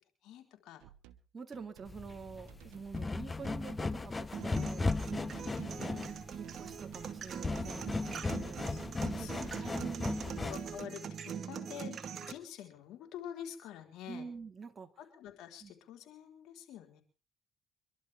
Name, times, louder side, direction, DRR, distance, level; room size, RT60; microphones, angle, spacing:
voice 1, 0.2-0.9 5.4-6.1 8.7-8.8 9.1-14.3 15.0-17.0, left 10 dB, 80° left, 3 dB, 3.8 m, -48 dB
sound 1, 0.8-1.2 1.5-2.0 2.5-3.2 3.4-3.9 4.4-5.1 5.4-5.8 6.3-7.7 8.2-8.9 9.2-9.7 10.2-10.5, right 13 dB, 90° right, 1.1 m, -57 dB
voice 2, 1.3-4.9 5.7-6.0 6.3-8.7 9.2-10.4 14.1-14.9 15.6-15.7, right 5 dB, 35° right, 5 dB, 2.2 m, -47 dB
sound 2, 1.9-10.8, left 3 dB, 25° left, 0.8 m, -37 dB
sound 3, 4.3-12.3, right 7 dB, 55° right, 2.1 m, -42 dB
25.5 x 12.0 x 3.5 m, 0.34 s
supercardioid pair, 75°, 0 cm